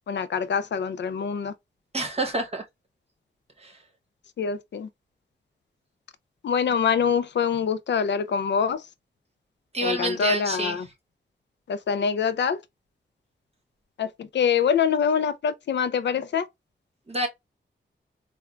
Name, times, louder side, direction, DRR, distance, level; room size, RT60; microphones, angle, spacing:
voice 1, 0.1-1.5 4.4-4.9 6.4-8.8 9.8-10.9 11.7-12.6 14.0-16.5, left 7 dB, 65° left, 0.5 m, -25 dB
voice 2, 1.9-2.7 3.6-3.8 9.7-10.9 17.1-17.3, right 1 dB, 30° right, 0.9 m, -28 dB
3.5 x 2.2 x 2.2 m
wide cardioid pair, 80°, 19 cm